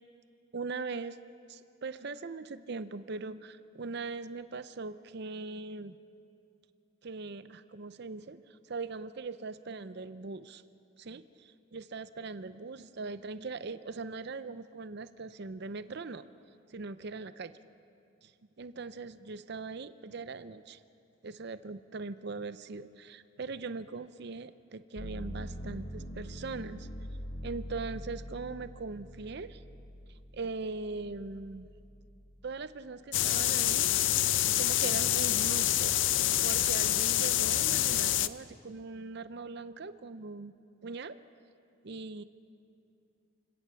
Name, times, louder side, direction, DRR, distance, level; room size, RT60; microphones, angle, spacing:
voice 1, 0.5-1.2 1.5-6.0 7.0-8.4 8.7-10.6 11.0-16.3 16.7-17.6 18.2-18.3 18.6-20.8 21.2-26.9 27.4-29.6 30.3-31.7 32.4-34.0 34.3-36.0 36.4-40.5 40.8-41.2 41.8-42.2, right 4 dB, 50° right, 13 dB, 0.6 m, -40 dB
sound 1, 25.0-32.8 33.3-34.1, equal, 45° left, 1.2 m, -44 dB
sound 2, 33.1-38.3, left 13 dB, 60° left, 0.5 m, -27 dB
28.0 x 17.5 x 6.9 m, 2.5 s
head